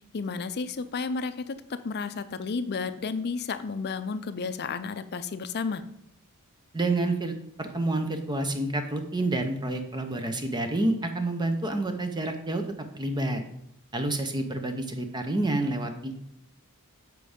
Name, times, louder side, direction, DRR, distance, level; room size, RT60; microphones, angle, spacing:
voice 1, 0.1-5.8, left 4 dB, 50° left, 12 dB, 0.5 m, -32 dB
voice 2, 6.7-12.6 12.9-13.4 13.9-16.1, right 2 dB, 20° right, 6 dB, 0.7 m, -28 dB
7.5 x 4.7 x 5.0 m, 0.73 s
head